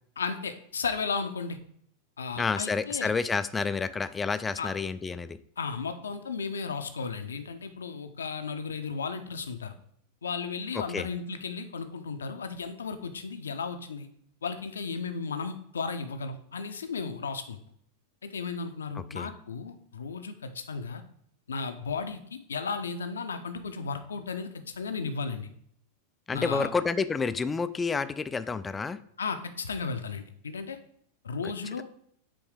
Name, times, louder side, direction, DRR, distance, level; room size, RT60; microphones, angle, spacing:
voice 1, 0.2-1.6 2.2-3.1 4.6-4.7 5.6-9.7 10.2-14.1 14.4-17.6 18.2-21.0 21.5-25.5 26.3-26.7 29.2-30.8 31.2-31.8, left 5 dB, 70° left, 8 dB, 0.6 m, -34 dB
voice 2, 2.4-5.4 10.7-11.1 19.1-19.3 26.3-29.0, left 4 dB, 15° left, 13 dB, 0.4 m, -29 dB
7.7 x 3.5 x 4.8 m, 0.68 s
figure-of-eight pair, 90°, 0 cm